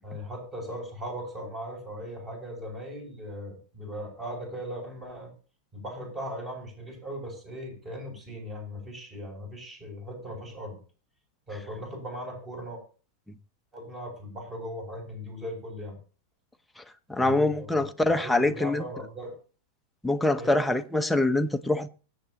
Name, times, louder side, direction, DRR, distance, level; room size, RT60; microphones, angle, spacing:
voice 1, 0.0-5.3 5.7-10.8 11.5-12.8 13.7-16.0 17.2-17.9 18.2-19.3 20.4-20.6, equal, 25° right, 7.9 m, -38 dB
voice 2, 17.1-18.9 20.0-21.9, left 2 dB, 5° left, 0.9 m, -24 dB
24.0 x 8.1 x 3.1 m
figure-of-eight pair, 95°, 0 cm